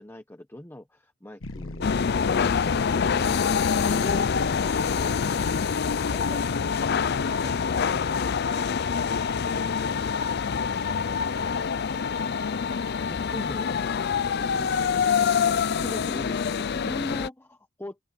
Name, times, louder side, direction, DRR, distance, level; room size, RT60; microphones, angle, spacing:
voice 1, 0.0-4.4 13.0-13.7 14.3-15.3 15.7-18.0, left 1 dB, 10° left, 1.0 m, -40 dB
sound 1, 1.4-6.5, left 2 dB, 85° left, 1.3 m, -41 dB
sound 2, 1.8-17.3, left 6 dB, 55° left, 0.5 m, -25 dB
voice 2, 6.1-6.7, equal, 5° right, 2.8 m, -51 dB
head